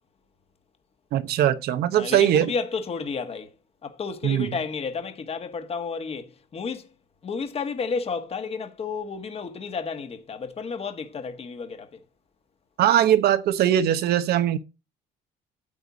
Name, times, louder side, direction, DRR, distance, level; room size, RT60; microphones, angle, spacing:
voice 1, 1.1-2.5 4.2-4.5 12.8-14.6, right 11 dB, 70° right, 1.0 m, -21 dB
voice 2, 2.0-3.5 3.8-6.9 7.2-12.0, left 5 dB, 35° left, 1.5 m, -32 dB
9.1 x 8.0 x 4.0 m
cardioid pair, 110°, 17 cm